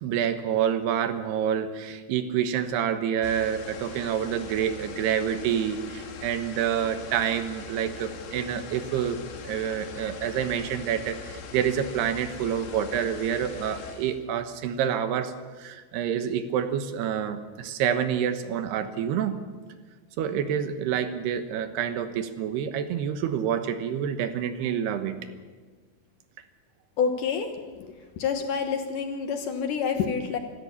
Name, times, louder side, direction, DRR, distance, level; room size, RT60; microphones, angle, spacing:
voice 1, 0.0-9.2 9.4-19.4 20.2-25.2, right 9 dB, 80° right, 10 dB, 3.2 m, -28 dB
sound 1, 3.2-14.2, left 6 dB, 90° left, 4.3 m, -42 dB
voice 2, 27.0-27.5 27.8-27.9 28.2-30.4, left 6 dB, 65° left, 6 dB, 2.3 m, -27 dB
26.0 x 13.5 x 8.5 m, 1.5 s
omnidirectional pair, 4.7 m